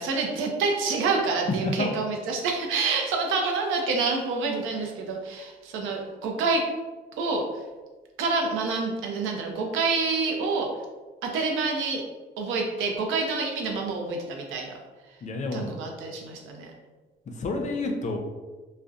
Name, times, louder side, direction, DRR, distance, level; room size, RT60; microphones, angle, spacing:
voice 1, 0.0-6.6 7.2-7.4 8.2-10.7 11.2-12.0 12.4-14.7 15.5-16.7, right 4 dB, 90° right, 2 dB, 0.5 m, -27 dB
voice 2, 15.2-15.7 17.4-18.2, left 2 dB, 40° left, 3 dB, 0.4 m, -29 dB
2.6 x 2.0 x 2.3 m, 1.3 s
cardioid pair, 90°, 20 cm